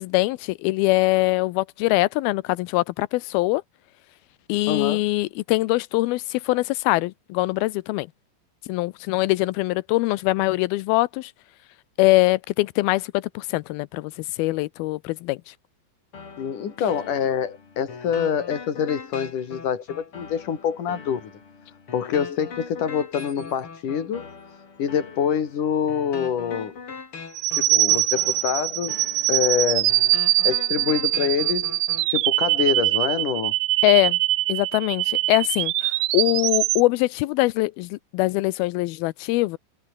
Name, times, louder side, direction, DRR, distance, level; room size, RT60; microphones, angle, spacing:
voice 1, 0.0-3.6 4.5-8.1 8.7-11.3 12.0-15.6 33.8-34.2 34.5-39.6, left 20 dB, 80° left, 2.2 m, -23 dB
voice 2, 4.7-5.0 16.4-21.3 21.9-26.8 27.5-29.9 30.4-31.8 32.1-33.5, left 8 dB, 50° left, 4.1 m, -26 dB
sound 1, 16.1-32.1, left 5 dB, 35° left, 3.8 m, -41 dB
sound 2, 27.4-36.8, right 18 dB, 85° right, 2.0 m, -23 dB
omnidirectional pair, 5.0 m